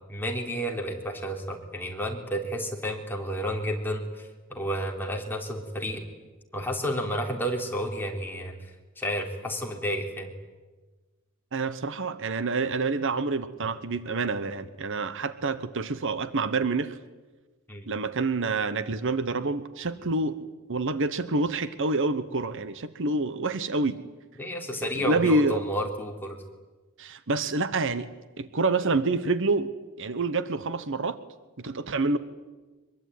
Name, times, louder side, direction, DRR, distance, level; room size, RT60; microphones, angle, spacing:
voice 1, 0.0-6.0 6.5-8.7 9.0-10.3 17.7-17.9 24.4-26.4, equal, 10° left, 1 dB, 3.7 m, -31 dB
voice 2, 11.5-17.0 17.9-20.4 20.7-24.0 24.8-25.6 27.0-28.1 28.4-29.7 30.0-31.2 31.6-32.2, right 3 dB, 60° right, 13 dB, 1.1 m, -27 dB
24.0 x 23.0 x 9.4 m, 1.3 s
head